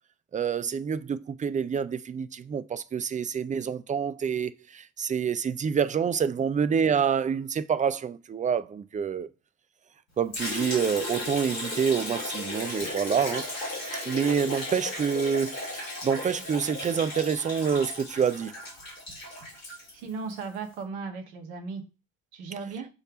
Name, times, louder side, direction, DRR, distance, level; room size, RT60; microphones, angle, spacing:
voice 1, 0.3-9.3 10.2-13.4 14.1-18.5, right 7 dB, 20° right, 0.5 m, -27 dB
Liquid, 10.3-20.4, left 1 dB, 80° left, 3.1 m, -35 dB
voice 2, 19.9-21.8 22.3-22.9, right 4 dB, 65° right, 1.6 m, -36 dB
7.2 x 3.3 x 5.0 m
figure-of-eight pair, 50°, 39 cm